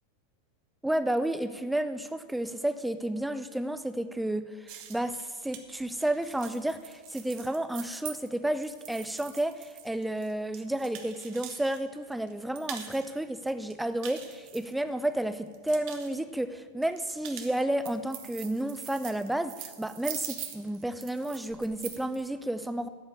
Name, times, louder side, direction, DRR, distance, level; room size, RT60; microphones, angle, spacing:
voice 1, 0.8-22.9, right 1 dB, 5° right, 11 dB, 0.6 m, -31 dB
sound 1, 4.7-11.8 12.1-13.1 13.5-15.1 15.5-16.1 16.8-22.2, right 10 dB, 45° right, 1.2 m, -43 dB
12.5 x 5.4 x 8.5 m, 1.4 s
figure-of-eight pair, 90°, 0 cm